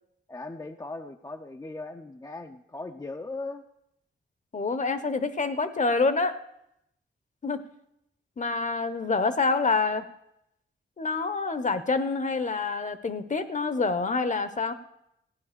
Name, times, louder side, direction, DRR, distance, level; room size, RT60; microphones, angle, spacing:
voice 1, 0.3-3.6, left 2 dB, 20° left, 6 dB, 0.6 m, -38 dB
voice 2, 4.5-6.4 7.4-7.6 8.4-10.0 11.0-14.7, left 4 dB, 40° left, 12 dB, 1.0 m, -27 dB
16.0 x 9.5 x 6.8 m, 0.80 s
wide cardioid pair, 110°, 19 cm